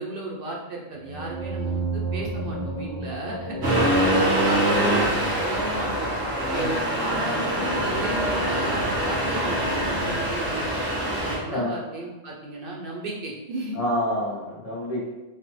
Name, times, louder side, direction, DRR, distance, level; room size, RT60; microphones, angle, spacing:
voice 1, 0.0-3.6 4.1-6.1 6.5-13.8, right 2 dB, 65° right, -2 dB, 0.8 m, -34 dB
sound 1, 1.0-5.6, right 3 dB, 20° left, 0.7 m, -33 dB
Accelerating revving vroom, 3.6-11.4, right 1 dB, 90° right, 1.1 m, -24 dB
voice 2, 6.4-6.8 11.4-11.7 13.7-15.1, left 1 dB, 50° left, -5 dB, 0.5 m, -28 dB
3.2 x 2.0 x 3.0 m, 1.1 s
omnidirectional pair, 1.1 m